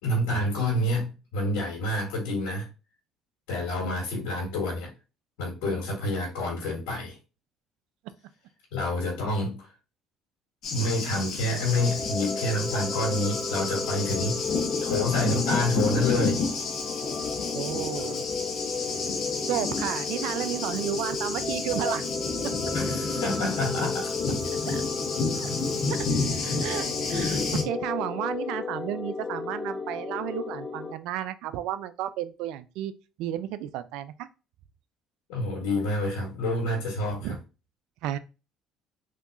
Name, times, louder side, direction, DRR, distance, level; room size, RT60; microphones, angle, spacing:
voice 1, 0.0-2.7 3.5-4.9 5.4-7.2 8.7-9.6 10.7-14.4 14.8-16.4 22.7-24.1 26.4-26.5 35.3-37.4, left 1 dB, 85° left, 1.6 m, -28 dB
Thunder, 10.6-27.6, left 4 dB, 60° left, 0.8 m, -30 dB
sound 1, 11.6-30.9, left 4 dB, 20° left, 0.6 m, -34 dB
voice 2, 17.5-18.2 19.5-22.0 24.6-24.8 25.4-25.5 26.6-32.9 33.2-34.1 37.2-37.4 38.0-38.2, right 12 dB, 80° right, 0.3 m, -32 dB
3.6 x 2.8 x 2.5 m
supercardioid pair, 80°, 0 cm